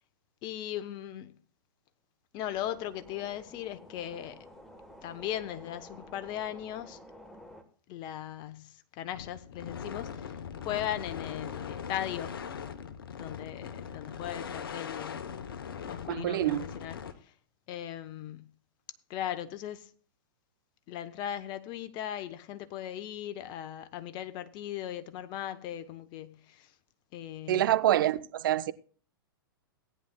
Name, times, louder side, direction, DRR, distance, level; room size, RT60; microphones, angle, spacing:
voice 1, 0.4-1.3 2.3-4.5 5.0-7.0 7.9-12.3 13.2-15.4 15.8-17.3 17.7-18.5 19.1-19.9 20.9-26.7 27.1-27.8, left 11 dB, 40° left, 0.9 m, -38 dB
sound 1, 2.4-7.6, equal, ahead, 1.3 m, -51 dB
sound 2, 9.1-17.1, left 7 dB, 70° left, 0.9 m, -40 dB
voice 2, 16.1-16.7 27.5-28.7, right 13 dB, 60° right, 0.6 m, -26 dB
17.5 x 9.8 x 2.3 m
hypercardioid pair, 105°, 12 cm